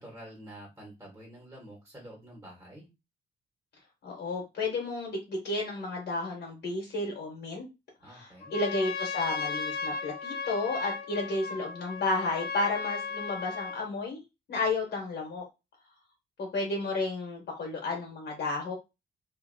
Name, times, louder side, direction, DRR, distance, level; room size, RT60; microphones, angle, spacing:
voice 1, 0.0-2.9 8.0-8.6, right 1 dB, 15° right, -2 dB, 1.3 m, -48 dB
voice 2, 4.0-7.7 8.0-14.2 14.5-15.4 16.4-18.8, left 2 dB, 70° left, -1 dB, 1.0 m, -32 dB
Trumpet, 8.4-13.9, left 4 dB, 55° left, 0.5 m, -36 dB
2.7 x 2.5 x 2.6 m, 0.25 s
cardioid pair, 90°, 19 cm